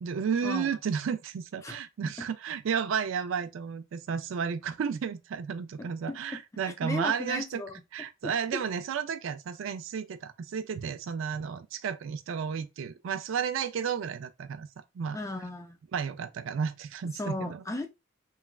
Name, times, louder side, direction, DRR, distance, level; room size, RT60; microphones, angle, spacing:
voice 1, 0.0-7.6 7.9-14.7 14.9-15.2 15.9-17.6, right 6 dB, 65° right, 0.3 m, -32 dB
voice 2, 5.8-6.2 6.8-7.7 15.1-15.8 17.2-17.9, left 2 dB, 15° left, 0.3 m, -35 dB
3.1 x 2.3 x 2.3 m
head